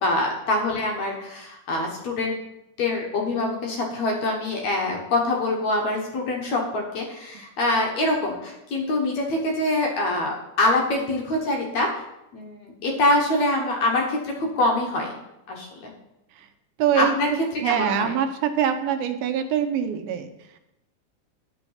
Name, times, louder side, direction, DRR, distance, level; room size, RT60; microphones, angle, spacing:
voice 1, 0.0-2.4 2.8-11.9 12.3-15.1 15.5-15.9 16.9-17.3 17.7-18.1, left 2 dB, 60° left, 0 dB, 2.3 m, -24 dB
voice 2, 16.8-17.1 17.6-20.3, right 9 dB, 85° right, 7 dB, 2.5 m, -24 dB
10.5 x 5.9 x 5.6 m, 0.89 s
omnidirectional pair, 4.2 m